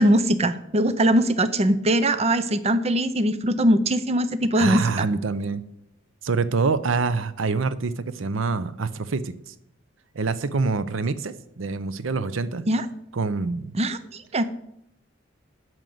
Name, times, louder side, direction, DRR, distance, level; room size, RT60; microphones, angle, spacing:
voice 1, 0.0-5.1 12.7-12.9 13.7-14.4, right 1 dB, 30° right, 12 dB, 0.5 m, -21 dB
voice 2, 4.6-5.6 6.2-9.5 10.1-12.7 13.1-13.7, right 4 dB, 75° right, 15 dB, 0.6 m, -26 dB
9.1 x 6.3 x 7.7 m, 0.78 s
head